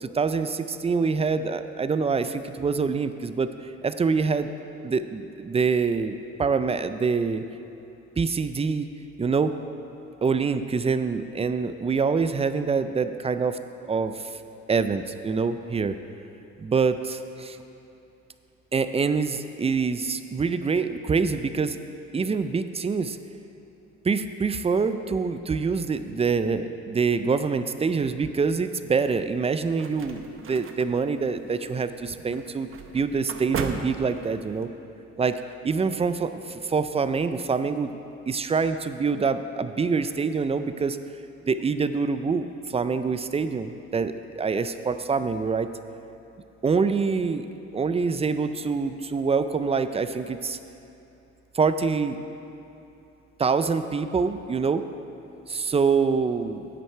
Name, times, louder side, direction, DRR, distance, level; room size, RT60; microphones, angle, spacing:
voice 1, 0.0-3.5 3.8-4.5 4.8-7.4 8.2-8.9 9.2-9.5 10.2-13.6 13.8-14.4 14.7-16.0 16.6-17.6 18.7-21.8 22.1-23.2 24.0-32.7 32.9-34.7 35.2-37.9 38.3-41.0 41.5-45.7 46.6-47.5 47.7-50.6 51.5-52.2 53.4-54.8 55.5-56.7, right 5 dB, 20° right, 11 dB, 0.4 m, -25 dB
sound 1, 29.3-34.7, right 5 dB, 45° right, 0.7 m, -38 dB
10.0 x 8.1 x 4.5 m, 2.8 s
cardioid pair, 90°, 30 cm